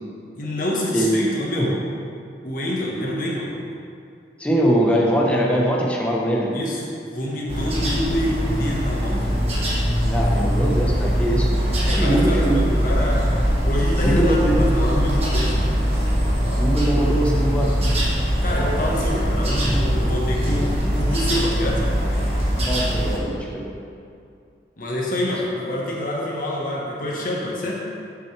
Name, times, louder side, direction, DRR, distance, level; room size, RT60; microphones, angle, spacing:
voice 1, 0.4-1.7 2.4-3.5 6.5-9.3 11.8-13.2 13.6-15.6 18.4-21.8 24.8-27.8, left 1 dB, 50° left, -4 dB, 1.4 m, -26 dB
voice 2, 4.4-6.5 10.0-11.5 11.9-12.7 14.0-15.1 16.6-17.7 22.6-23.6, right 1 dB, 5° left, -4 dB, 1.0 m, -22 dB
sound 1, 7.5-23.2, equal, 35° right, 1.5 m, -21 dB
9.9 x 7.3 x 3.4 m, 2.5 s
head